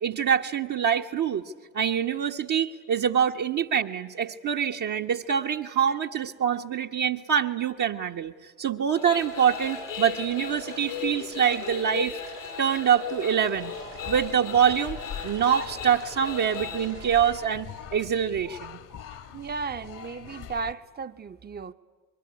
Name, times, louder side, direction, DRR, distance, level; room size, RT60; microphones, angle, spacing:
voice 1, 0.0-1.4 1.7-8.3 8.6-12.2 12.6-13.7 14.1-15.0 15.2-18.8, right 8 dB, 50° right, 1.2 m, -25 dB
sound 1, 9.0-16.9, left 6 dB, 90° left, 3.3 m, -37 dB
sound 2, 9.1-17.3, right 5 dB, 90° right, 7.5 m, -48 dB
sound 3, 13.5-20.7, left 8 dB, 55° left, 1.5 m, -43 dB
voice 2, 19.3-21.7, right 5 dB, 25° right, 0.9 m, -35 dB
25.5 x 22.0 x 9.8 m
hypercardioid pair, 50°, 38 cm